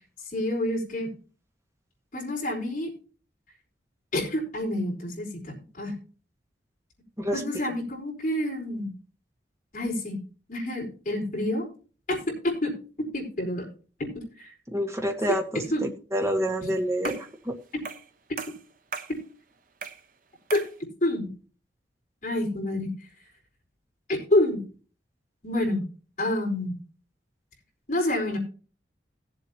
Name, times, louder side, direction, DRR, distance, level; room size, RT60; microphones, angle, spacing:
voice 1, 0.3-1.1 2.1-2.9 4.1-5.9 7.3-8.9 9.7-10.2 10.5-11.7 12.1-12.7 13.0-13.7 14.0-14.5 15.7-15.8 20.5-20.7 21.0-21.3 22.2-22.9 24.1-24.6 25.4-25.9 26.2-26.7 27.9-28.4, left 1 dB, 45° left, -1 dB, 4.6 m, -28 dB
voice 2, 14.7-17.2, equal, 15° right, 3 dB, 1.5 m, -27 dB
sound 1, 17.0-17.4 17.9-18.1 18.4-19.2 19.8-20.1 20.5-20.8, right 5 dB, 45° right, 1.0 m, -37 dB
17.5 x 7.7 x 2.9 m, 0.38 s
head